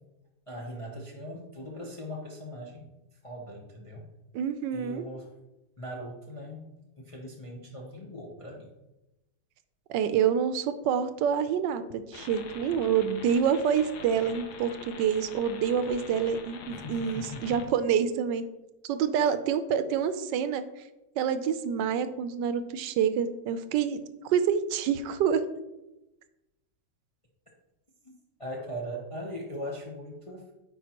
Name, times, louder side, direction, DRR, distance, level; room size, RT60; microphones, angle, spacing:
voice 1, 0.5-2.9 3.2-4.1 4.7-5.3 5.8-8.7 16.7-17.6 28.4-30.5, equal, 40° left, -2 dB, 0.5 m, -40 dB
voice 2, 4.3-5.0 9.9-18.4 18.8-20.6 21.2-24.0 24.3-25.4, right 7 dB, 85° right, 11 dB, 1.2 m, -27 dB
sound 1, 12.1-17.6, left 5 dB, 70° left, 1.3 m, -45 dB
9.1 x 4.4 x 2.9 m, 0.97 s
omnidirectional pair, 1.9 m